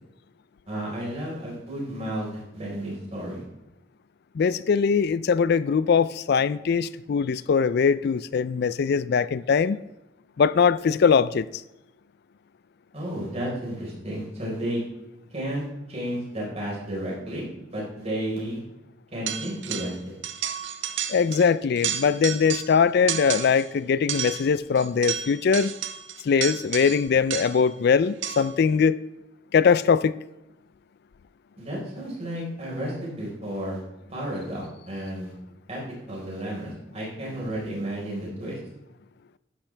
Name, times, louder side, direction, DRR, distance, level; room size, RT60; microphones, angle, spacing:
voice 1, 0.7-3.4 12.9-14.8 15.3-17.4 17.7-18.6 19.1-20.2 31.6-33.8 34.1-35.3 35.7-35.8 36.1-38.6, right 1 dB, 35° right, 4.3 m, -32 dB
voice 2, 4.4-9.8 10.4-11.5 21.1-25.7 26.2-29.0 29.5-30.1, left 6 dB, 55° left, 0.4 m, -21 dB
sound 1, 19.3-20.0 20.2-21.5 21.8-22.8 23.1-23.7 24.1-27.7 28.2-28.6, right 9 dB, 75° right, 0.8 m, -32 dB
12.0 x 10.5 x 3.3 m
head